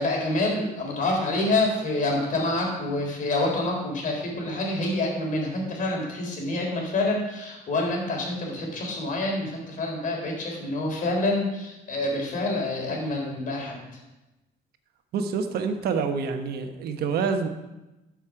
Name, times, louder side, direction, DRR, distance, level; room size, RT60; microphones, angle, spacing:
voice 1, 0.0-13.8, left 2 dB, 50° left, 0 dB, 3.8 m, -27 dB
voice 2, 15.1-17.5, right 5 dB, 70° right, 7 dB, 1.2 m, -27 dB
12.5 x 6.3 x 5.0 m, 1.0 s
cardioid pair, 110°, 17 cm